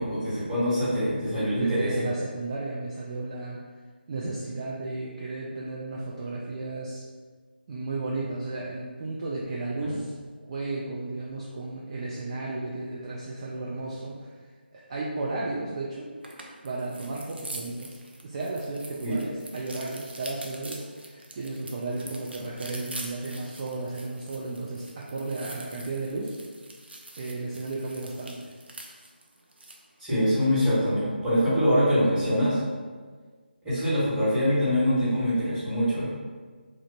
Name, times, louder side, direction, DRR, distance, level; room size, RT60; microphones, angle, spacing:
voice 1, 0.0-2.0 9.8-9.9 19.0-19.1 30.0-32.6 33.6-36.1, equal, 5° right, -15 dB, 1.4 m, -24 dB
voice 2, 1.5-3.6 4.1-7.0 7.7-10.1 10.4-14.3 14.7-16.1 16.6-17.9 18.2-26.4 27.2-28.5, right 2 dB, 30° right, -5 dB, 0.4 m, -34 dB
sound 1, 16.2-29.9, right 2 dB, 75° right, 0.6 m, -44 dB
3.2 x 2.5 x 3.9 m, 1.5 s
figure-of-eight pair, 155°, 6 cm